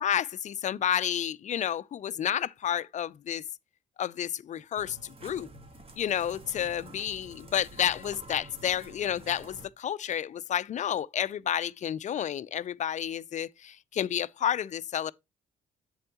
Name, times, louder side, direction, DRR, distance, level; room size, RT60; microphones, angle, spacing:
voice 1, 0.0-3.4 4.0-5.5 6.0-15.1, left 10 dB, 45° left, 0.5 m, -30 dB
sound 1, 4.8-9.7, right 2 dB, 35° right, 1.7 m, -48 dB
8.0 x 7.5 x 2.9 m
hypercardioid pair, 50°, 16 cm